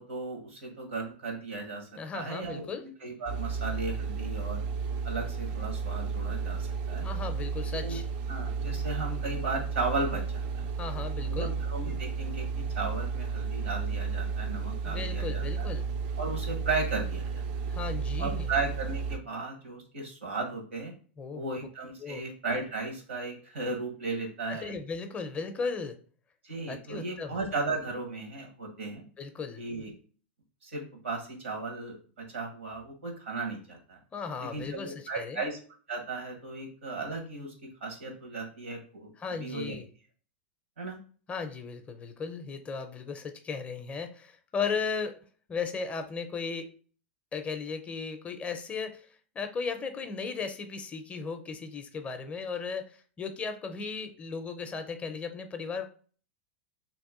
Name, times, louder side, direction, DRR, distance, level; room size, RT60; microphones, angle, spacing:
voice 1, 0.0-4.6 5.0-7.1 7.7-8.0 8.3-10.7 11.2-15.7 16.2-17.4 18.2-20.9 21.3-24.7 26.4-29.0 29.6-29.9 30.6-34.0 34.4-35.6 35.9-37.5 37.8-39.8 40.8-41.0, right 3 dB, 85° right, 2 dB, 1.4 m, -35 dB
voice 2, 1.9-2.9 7.0-8.1 10.8-11.5 14.9-15.9 17.7-18.5 21.2-21.6 22.0-22.3 24.5-26.0 26.7-27.4 29.2-29.6 34.1-35.4 39.2-39.9 41.3-45.2 45.5-46.7 47.3-49.1 49.4-55.9, left 5 dB, 20° left, 7 dB, 0.5 m, -36 dB
sound 1, 3.3-19.2, right 5 dB, 55° right, 0.4 m, -33 dB
2.9 x 2.4 x 3.6 m, 0.41 s
hypercardioid pair, 115°, 6 cm